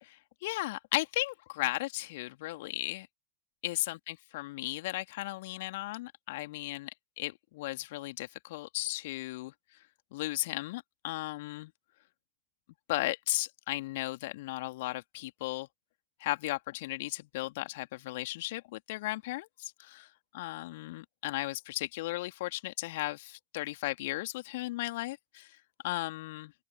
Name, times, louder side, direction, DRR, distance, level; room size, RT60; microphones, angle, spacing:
voice 1, 0.0-3.1 3.6-9.5 10.1-11.7 12.9-15.7 16.2-25.6 25.8-26.5, left 19 dB, 50° left, 2.4 m, -36 dB
open air
figure-of-eight pair, 90°, 0 cm